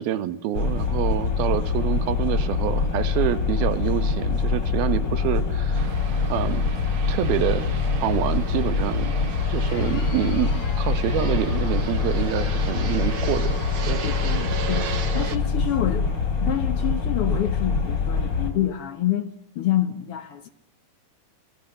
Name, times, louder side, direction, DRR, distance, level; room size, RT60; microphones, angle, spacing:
voice 1, 0.0-5.9 6.3-6.6 7.1-7.7 8.0-9.2 9.5-14.0, right 11 dB, 75° right, 3.1 m, -27 dB
sound 1, 0.5-18.5, left 4 dB, 30° left, 4.2 m, -24 dB
Fixed-wing aircraft airplane, 5.7-15.4, right 7 dB, 50° right, 1.6 m, -36 dB
Crowd, 9.2-15.7, left 8 dB, 60° left, 3.4 m, -44 dB
voice 2, 14.0-16.1 16.4-19.3 19.5-20.5, left 12 dB, 80° left, 1.3 m, -27 dB
29.5 x 23.5 x 7.8 m
omnidirectional pair, 4.5 m